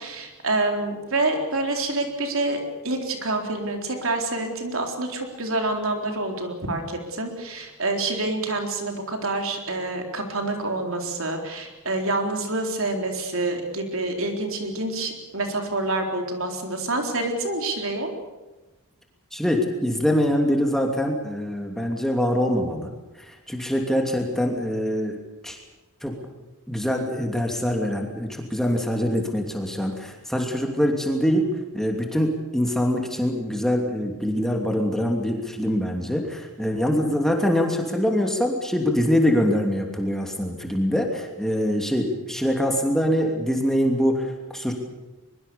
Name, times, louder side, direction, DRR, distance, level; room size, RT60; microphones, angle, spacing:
voice 1, 0.0-18.1, right 2 dB, 70° right, 3 dB, 4.0 m, -27 dB
voice 2, 19.3-22.9 23.2-25.2 25.4-25.6 26.0-26.2 26.7-31.5 31.7-44.7, equal, ahead, 2 dB, 2.9 m, -24 dB
23.0 x 23.0 x 7.0 m, 1.1 s
head